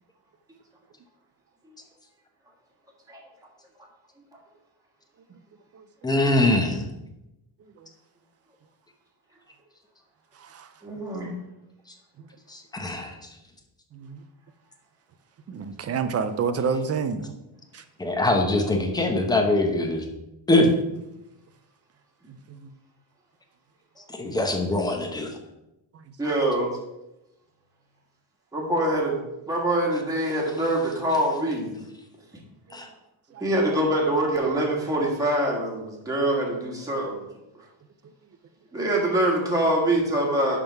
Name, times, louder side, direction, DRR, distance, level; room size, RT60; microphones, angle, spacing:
voice 1, 6.0-6.9 12.5-13.2 18.0-20.1 20.5-20.7 24.1-25.3 32.7-32.9, left 2 dB, 10° left, 0.9 m, -23 dB
voice 2, 10.8-11.3 26.2-26.7 28.5-29.2 29.5-31.8 33.4-37.2 38.7-40.6, right 1 dB, 5° right, 1.5 m, -24 dB
voice 3, 15.5-17.3 17.7-17.8, right 5 dB, 35° right, 0.4 m, -27 dB
11.0 x 3.7 x 4.6 m
cardioid pair, 160°, 49 cm